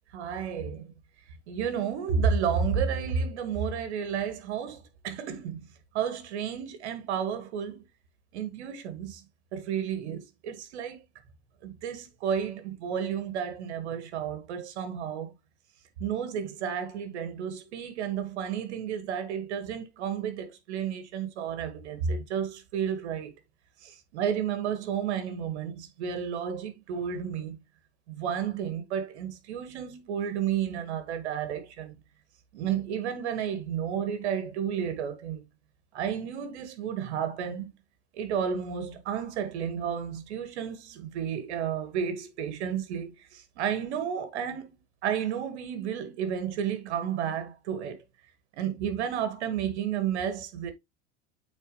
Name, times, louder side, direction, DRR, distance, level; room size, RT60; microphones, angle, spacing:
voice 1, 0.1-0.9 1.5-5.6 5.9-7.8 8.3-9.2 9.5-11.0 11.6-15.3 16.0-23.3 23.8-27.6 28.1-31.9 32.5-35.4 35.9-37.7 38.1-44.7 45.0-48.0 48.6-50.7, right 8 dB, 80° right, 1.8 m, -32 dB
8.4 x 4.1 x 3.2 m
supercardioid pair, 100°, 33 cm